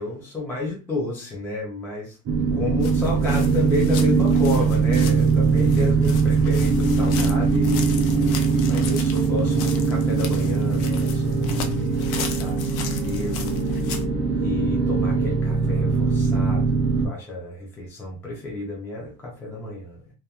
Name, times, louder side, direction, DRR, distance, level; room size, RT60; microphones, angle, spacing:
voice 1, 0.0-2.2 2.5-13.6 14.4-20.1, left 2 dB, 5° left, -3 dB, 0.3 m, -31 dB
sound 1, 2.3-17.1, right 4 dB, 55° right, 0.6 m, -21 dB
sound 2, 2.8-14.0, left 6 dB, 70° left, 0.5 m, -37 dB
2.3 x 2.2 x 2.7 m, 0.33 s
cardioid pair, 170°, 32 cm